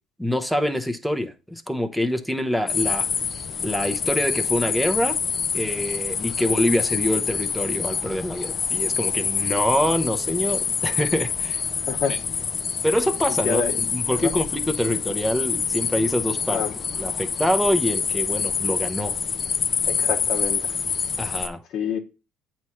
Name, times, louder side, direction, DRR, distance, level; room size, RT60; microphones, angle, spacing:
voice 1, 0.2-3.1 3.6-5.2 5.5-11.6 12.1-12.2 12.8-16.6 17.0-19.1 21.2-21.6, left 1 dB, ahead, 0.8 m, -25 dB
sound 1, 2.7-21.5, left 6 dB, 35° left, 0.6 m, -26 dB
voice 2, 13.4-13.8 14.2-14.3 16.5-16.7 19.9-20.8 21.7-22.0, left 6 dB, 55° left, 0.9 m, -27 dB
8.4 x 3.1 x 5.7 m
cardioid pair, 135°, 0 cm